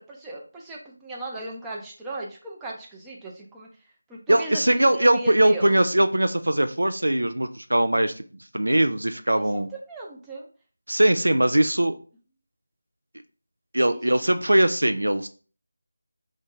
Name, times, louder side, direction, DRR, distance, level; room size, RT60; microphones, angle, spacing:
voice 1, 0.2-3.7 4.1-5.7 9.3-10.5 13.9-14.0, right 2 dB, 10° right, -3 dB, 0.5 m, -37 dB
voice 2, 4.3-8.1 8.5-9.7 10.9-12.0 13.7-15.3, right 1 dB, 85° right, 9 dB, 0.3 m, -21 dB
2.6 x 2.4 x 3.6 m, 0.38 s
figure-of-eight pair, 165°, 0 cm